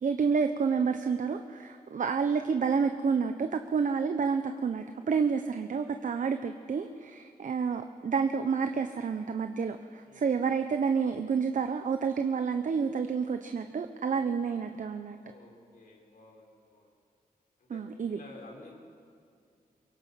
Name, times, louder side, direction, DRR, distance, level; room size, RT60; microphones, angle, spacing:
voice 1, 0.0-15.2 17.7-18.2, right 5 dB, 60° right, 7 dB, 0.9 m, -29 dB
voice 2, 10.0-10.4 15.2-16.9 17.6-18.7, left 2 dB, 75° left, -1 dB, 4.9 m, -52 dB
24.0 x 22.0 x 5.9 m, 2.3 s
wide cardioid pair, 105°, 15 cm